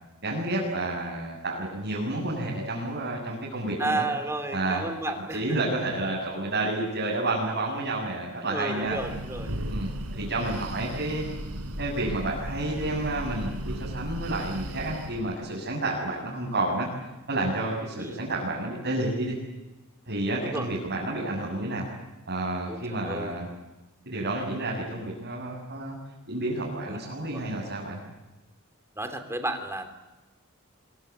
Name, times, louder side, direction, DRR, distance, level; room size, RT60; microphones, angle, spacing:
voice 1, 0.2-4.1 4.5-4.9 5.3-9.0 9.7-11.3 11.8-16.9 17.3-19.4 20.1-21.9 22.3-23.5 24.1-26.0 26.3-28.0, right 2 dB, 50° right, -4 dB, 7.7 m, -30 dB
voice 2, 3.8-5.4 8.5-9.5 17.9-18.2 20.4-20.7 22.7-23.3 26.9-27.0 27.3-27.4 29.0-29.9, right 2 dB, 10° right, 7 dB, 3.3 m, -32 dB
Breathing, 8.8-15.3, right 1 dB, 85° right, 3.7 m, -36 dB
25.5 x 24.0 x 8.4 m, 1.1 s
head